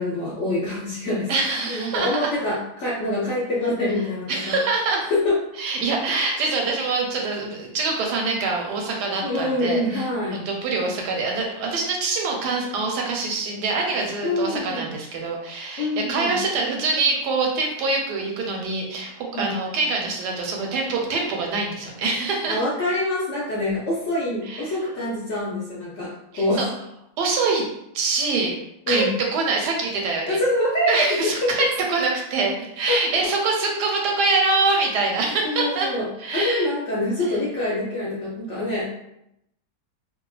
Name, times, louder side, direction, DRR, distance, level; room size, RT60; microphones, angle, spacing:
voice 1, 0.0-1.3 1.7-4.6 5.1-5.4 9.2-10.4 14.2-14.9 15.8-16.4 19.3-19.5 22.5-26.7 28.9-29.1 30.3-31.5 32.9-33.0 35.4-38.9, left 1 dB, 65° left, -6 dB, 0.7 m, -25 dB
voice 2, 1.3-2.1 4.3-5.1 5.6-22.6 24.5-24.7 26.3-26.7 27.2-27.6 27.9-28.5 28.9-29.0 29.3-30.4 30.9-35.9 36.2-36.7, right 3 dB, 80° right, 0 dB, 1.2 m, -24 dB
2.7 x 2.4 x 2.3 m, 0.80 s
omnidirectional pair, 1.8 m